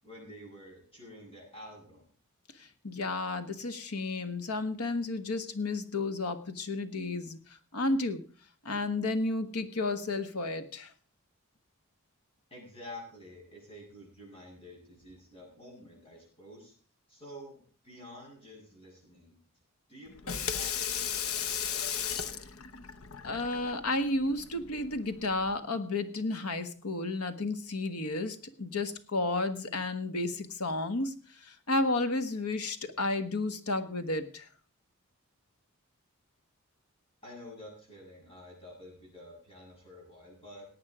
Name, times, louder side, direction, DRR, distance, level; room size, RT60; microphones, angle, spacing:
voice 1, 0.0-2.1 12.5-16.7 17.1-19.4 19.9-22.0 37.2-40.7, left 1 dB, 25° left, -1 dB, 7.7 m, -49 dB
voice 2, 2.6-7.4 7.7-8.2 8.6-10.9 23.2-34.5, left 2 dB, 90° left, 9 dB, 1.5 m, -32 dB
Water tap faucet / Sink (filling or washing), 20.1-25.6, left 8 dB, 70° left, 0.9 m, -36 dB
18.0 x 8.8 x 5.0 m, 0.41 s
head